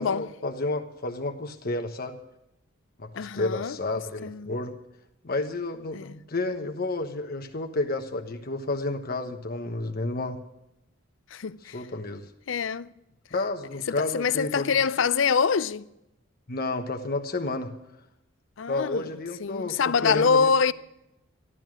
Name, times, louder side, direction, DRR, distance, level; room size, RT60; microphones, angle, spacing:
voice 1, 0.0-2.2 3.0-4.7 5.2-10.4 11.6-12.3 13.3-14.7 16.5-17.7 18.7-20.5, left 2 dB, 50° left, 1.1 m, -31 dB
voice 2, 3.1-3.8 4.2-4.5 5.9-6.1 11.3-11.8 12.5-12.9 13.9-15.9 18.6-19.1 19.4-20.7, left 5 dB, 70° left, 0.5 m, -25 dB
13.5 x 12.5 x 6.2 m
head